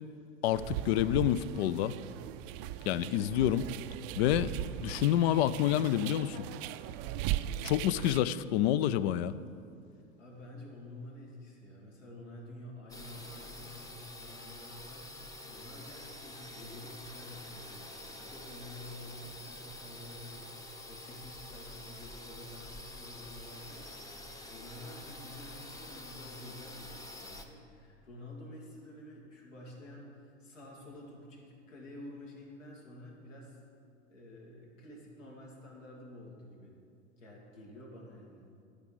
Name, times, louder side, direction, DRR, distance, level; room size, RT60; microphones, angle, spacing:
voice 1, 0.4-2.0 2.9-3.7 4.2-4.5 4.8-6.5 7.6-9.4, left 12 dB, 60° left, 16 dB, 0.5 m, -28 dB
sound 1, 0.5-8.2, right 12 dB, 45° right, 0.5 m, -38 dB
voice 2, 10.2-33.6 34.1-36.8 37.2-38.5, left 1 dB, 80° left, -2 dB, 2.7 m, -50 dB
sound 2, 12.9-27.4, left 1 dB, 10° left, 0.8 m, -47 dB
11.5 x 5.1 x 7.6 m, 2.5 s
hypercardioid pair, 95°, 37 cm